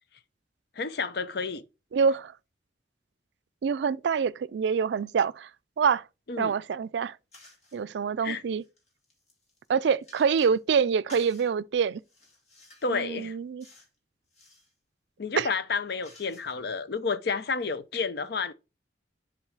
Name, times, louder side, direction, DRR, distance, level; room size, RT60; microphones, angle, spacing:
voice 1, 0.8-1.6 6.3-6.5 8.2-8.4 12.8-13.4 15.2-18.5, left 4 dB, 60° left, 0.6 m, -30 dB
voice 2, 1.9-2.3 3.6-5.5 5.8-6.0 6.4-7.2 7.7-8.6 9.7-12.0 12.9-13.6 15.4-15.5, right 6 dB, 70° right, 0.3 m, -26 dB
sound 1, 7.3-7.8 8.4-10.6 11.1-11.5 12.0-13.0 13.6-14.0 14.2-14.7 15.3-16.8, left 2 dB, 40° left, 2.5 m, -54 dB
7.2 x 4.0 x 4.5 m
head